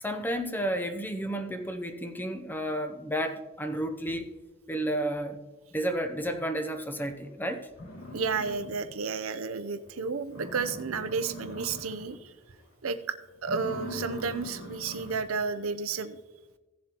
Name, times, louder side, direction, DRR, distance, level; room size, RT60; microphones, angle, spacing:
voice 1, 0.0-4.3 4.7-5.4 5.7-7.7, right 1 dB, 10° left, 7 dB, 0.6 m, -32 dB
sound 1, 7.2-7.3 7.7-9.1 9.5-9.6 10.0-10.1 10.3-12.2 12.5-12.9 13.4-15.4, left 1 dB, 85° left, 2.5 m, -42 dB
voice 2, 8.1-12.3 12.8-13.1 13.4-16.2, right 5 dB, 90° right, 11 dB, 0.7 m, -32 dB
16.5 x 7.2 x 3.0 m, 1.1 s
head